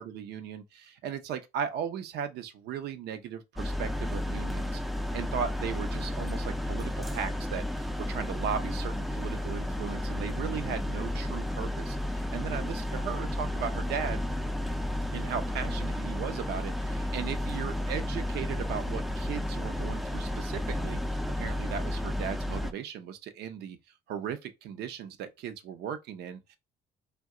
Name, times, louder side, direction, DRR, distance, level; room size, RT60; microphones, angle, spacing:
voice 1, 0.0-4.8 5.1-14.3 15.1-23.8 24.1-26.6, right 8 dB, 75° right, 0.6 m, -37 dB
sound 1, 3.6-22.7, left 1 dB, ahead, 0.3 m, -32 dB
2.8 x 2.2 x 3.6 m
cardioid pair, 110°, 17 cm